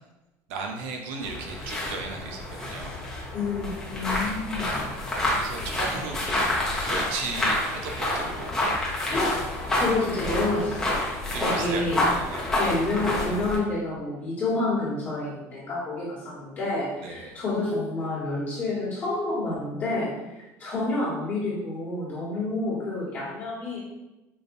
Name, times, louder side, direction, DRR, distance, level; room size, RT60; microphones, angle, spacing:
voice 1, 0.5-3.0 5.0-6.5 6.9-8.9 11.3-12.5 17.0-17.4, right 4 dB, 85° right, 2 dB, 0.6 m, -36 dB
sound 1, 1.2-13.6, left 1 dB, 10° left, 0.9 m, -28 dB
voice 2, 3.3-4.8 9.1-9.4 9.7-11.1 11.4-12.0 12.6-20.1 20.6-23.8, left 2 dB, 25° left, -8 dB, 1.4 m, -29 dB
4.9 x 2.6 x 2.6 m, 1.0 s
cardioid pair, 160°, 7 cm